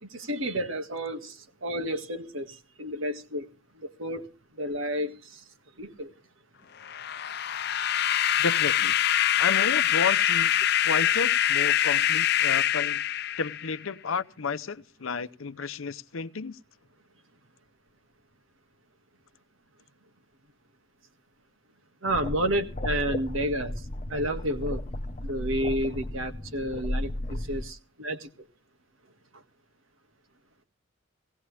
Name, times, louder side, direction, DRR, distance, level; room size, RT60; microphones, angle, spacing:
voice 1, 0.0-3.5 3.7-4.3 4.5-5.4 5.8-6.1 22.0-23.7 24.1-24.8 25.2-28.3 29.3-29.4, right 1 dB, 75° right, 1.8 m, -31 dB
sound 1, 6.8-13.8, left 11 dB, 50° left, 0.6 m, -24 dB
voice 2, 8.4-9.0 9.4-10.5 10.8-13.0 13.4-16.6, left 5 dB, 85° left, 0.8 m, -31 dB
sound 2, 22.1-27.6, left 1 dB, 30° left, 0.9 m, -34 dB
18.5 x 17.0 x 3.3 m
head